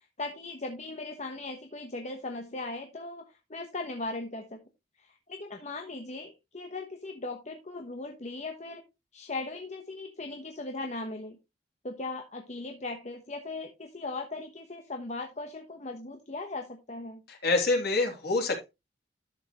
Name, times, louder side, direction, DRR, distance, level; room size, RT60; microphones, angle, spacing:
voice 1, 0.0-4.6 5.0-8.8 9.1-11.4 11.8-17.2, left 2 dB, 40° left, 4 dB, 1.1 m, -38 dB
voice 2, 17.3-18.7, left 3 dB, 55° left, 2 dB, 3.0 m, -26 dB
12.0 x 6.5 x 3.0 m, 0.23 s
head